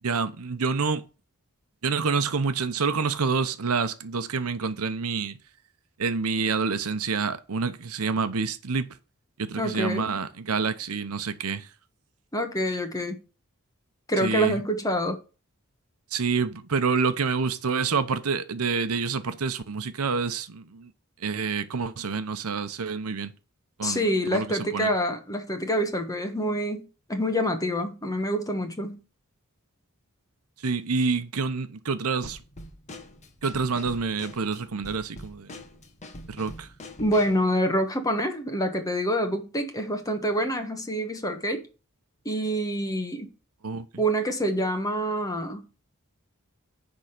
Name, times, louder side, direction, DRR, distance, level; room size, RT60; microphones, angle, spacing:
voice 1, 0.0-1.0 1.8-5.4 6.0-9.0 9.4-11.7 14.2-14.6 16.1-20.9 21.2-23.3 23.8-24.9 30.6-32.4 33.4-35.5 36.3-36.7 43.6-43.9, right 5 dB, 80° right, 0.8 m, -27 dB
voice 2, 9.6-10.2 12.3-13.2 14.1-15.2 23.8-29.0 37.0-41.7 42.2-43.3 44.0-45.7, equal, 15° left, 1.4 m, -26 dB
Drum kit / Snare drum, 32.2-37.4, left 1 dB, 35° left, 1.3 m, -44 dB
10.0 x 3.8 x 6.7 m
head